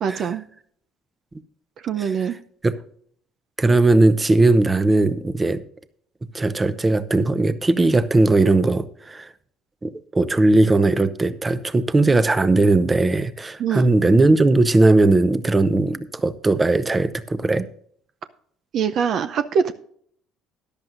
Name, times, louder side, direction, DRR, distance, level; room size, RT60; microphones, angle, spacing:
voice 1, 0.0-0.4 1.8-2.4 13.6-13.9 18.7-19.7, right 7 dB, 60° right, 10 dB, 0.6 m, -23 dB
voice 2, 3.6-5.6 6.3-9.3 9.8-17.7, right 2 dB, 20° right, 14 dB, 0.8 m, -18 dB
14.0 x 10.5 x 2.6 m, 0.62 s
supercardioid pair, 75°, 0 cm